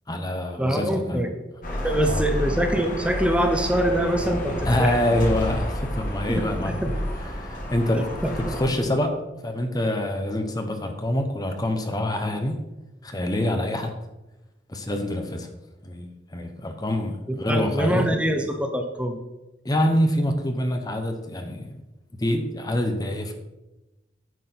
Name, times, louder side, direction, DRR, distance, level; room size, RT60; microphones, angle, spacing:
voice 1, 0.1-1.3 2.1-2.3 4.6-6.7 7.2-8.1 8.4-12.6 13.0-13.9 14.7-15.5 15.8-18.1 19.6-21.8 22.2-23.3, left 1 dB, 20° left, 6 dB, 0.9 m, -26 dB
voice 2, 0.6-1.3 1.8-4.9 6.3-7.0 7.9-8.3 17.3-19.2, right 1 dB, 5° right, 4 dB, 0.8 m, -24 dB
sound 1, 1.6-8.7, equal, 45° left, 1.9 m, -30 dB
9.4 x 6.1 x 6.0 m, 1.0 s
head